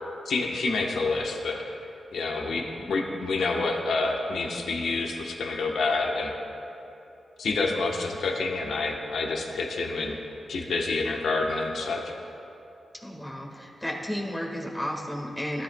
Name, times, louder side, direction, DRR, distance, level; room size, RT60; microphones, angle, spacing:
voice 1, 0.2-1.6 2.1-6.3 7.4-10.2 10.5-12.1, left 3 dB, 85° left, 1 dB, 1.0 m, -28 dB
voice 2, 12.9-15.6, equal, 10° left, -2 dB, 1.6 m, -33 dB
16.5 x 12.5 x 2.2 m, 2.8 s
cardioid pair, 85°, 0 cm